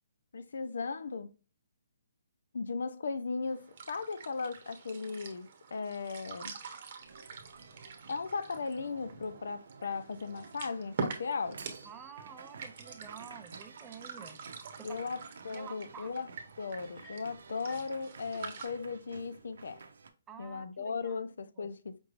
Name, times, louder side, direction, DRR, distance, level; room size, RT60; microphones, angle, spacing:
voice 1, 0.3-1.3 2.5-6.5 8.1-11.6 14.8-16.3 16.6-19.8 20.4-22.0, left 4 dB, 75° left, 0.5 m, -37 dB
sound 1, 3.5-18.7, right 5 dB, 40° right, 0.9 m, -45 dB
sound 2, 7.0-20.1, right 4 dB, 75° right, 0.7 m, -53 dB
voice 2, 11.9-14.4 14.8-15.0 15.5-16.1 20.3-21.2 21.6-21.7, right 7 dB, 10° right, 0.3 m, -50 dB
sound 3, 16.8-17.9, left 2 dB, 10° left, 1.3 m, -56 dB
5.2 x 3.1 x 2.4 m
hypercardioid pair, 165°, 0 cm